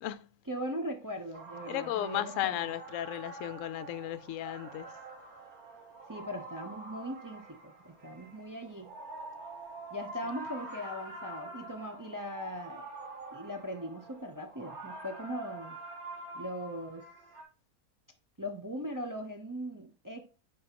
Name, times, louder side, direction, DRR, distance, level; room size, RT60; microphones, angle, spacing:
voice 1, 0.5-2.6 6.1-9.0 9.9-12.8 13.3-15.8 16.3-17.0 18.4-20.2, equal, 20° right, 0.6 m, -39 dB
sound 1, 1.2-17.4, right 2 dB, 75° right, 1.8 m, -46 dB
voice 2, 1.7-4.9, left 13 dB, 70° left, 0.9 m, -35 dB
9.2 x 4.4 x 2.9 m
omnidirectional pair, 1.5 m